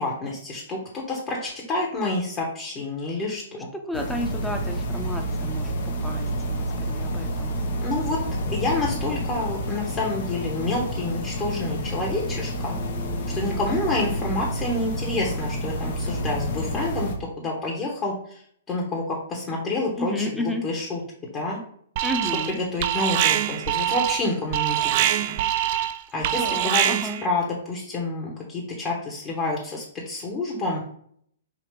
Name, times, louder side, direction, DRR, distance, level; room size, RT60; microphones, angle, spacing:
voice 1, 0.0-3.7 7.8-8.2 8.5-12.7 13.3-18.4 18.7-20.3 20.6-21.0 21.3-21.6 22.7-25.2 26.1-30.8, left 2 dB, 25° left, -3 dB, 1.0 m, -28 dB
voice 2, 3.5-7.6 20.0-20.6 22.0-22.6 26.4-27.2, left 1 dB, ahead, 3 dB, 0.7 m, -32 dB
sound 1, 3.9-17.2, equal, 60° left, 0.8 m, -29 dB
Alarm, 22.0-22.6 22.8-27.3, right 12 dB, 45° right, 0.3 m, -24 dB
5.0 x 2.8 x 3.2 m, 0.64 s
hypercardioid pair, 120°, 0 cm